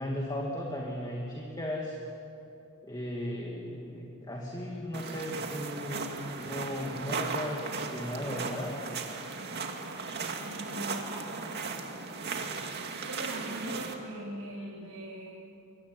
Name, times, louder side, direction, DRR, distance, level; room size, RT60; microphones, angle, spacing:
voice 1, 0.0-2.0 2.8-6.1 6.4-8.8, left 1 dB, 20° left, -1 dB, 2.5 m, -36 dB
sound 1, 4.9-13.9, right 4 dB, 50° right, 2.4 m, -37 dB
voice 2, 10.4-11.1 11.6-11.7 12.0-12.4 13.0-15.3, right 1 dB, 85° right, -4 dB, 4.1 m, -41 dB
24.0 x 23.5 x 9.5 m, 2.9 s
head